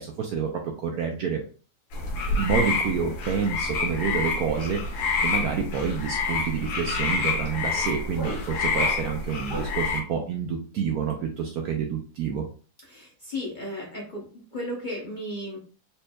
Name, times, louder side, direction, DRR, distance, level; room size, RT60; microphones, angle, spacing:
voice 1, 0.0-1.4 2.3-12.4, right 6 dB, 80° right, 2 dB, 0.8 m, -28 dB
sound 1, 1.9-10.0, left 4 dB, 75° left, 1.5 m, -28 dB
sound 2, 6.9-9.9, right 1 dB, 15° left, 1.0 m, -41 dB
voice 2, 12.9-14.3 14.5-15.6, left 1 dB, 60° left, -3 dB, 0.5 m, -34 dB
4.2 x 3.2 x 2.2 m, 0.39 s
omnidirectional pair, 2.1 m